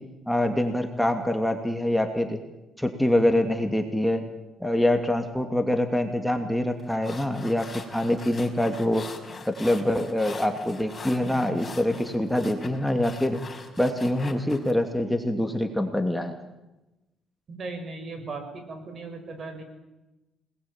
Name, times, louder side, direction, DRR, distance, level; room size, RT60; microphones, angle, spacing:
voice 1, 0.3-2.4 2.8-4.2 4.6-9.1 9.5-13.4 13.8-16.3, left 1 dB, 5° left, 5 dB, 2.7 m, -25 dB
sound 1, 6.8-14.7, left 4 dB, 30° left, 5.2 m, -42 dB
voice 2, 17.5-19.6, right 3 dB, 50° right, 5 dB, 7.1 m, -37 dB
27.0 x 20.0 x 9.1 m, 1.0 s
cardioid pair, 90°, 0 cm